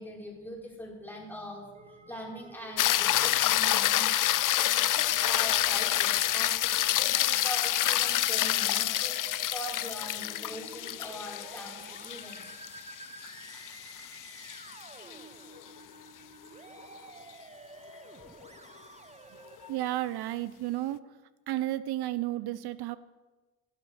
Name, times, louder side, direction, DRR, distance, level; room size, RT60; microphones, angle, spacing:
voice 1, 0.0-4.2 4.6-12.4, equal, 5° left, -4 dB, 5.6 m, -42 dB
Musical instrument, 1.7-19.7, right 3 dB, 15° right, 0.9 m, -50 dB
sound 1, 2.8-15.2 19.6-19.7, left 13 dB, 55° left, 0.5 m, -28 dB
voice 2, 19.7-21.0 21.5-23.0, right 15 dB, 80° right, 15 dB, 0.7 m, -32 dB
17.0 x 11.0 x 4.9 m, 1.2 s
cardioid pair, 85°, 38 cm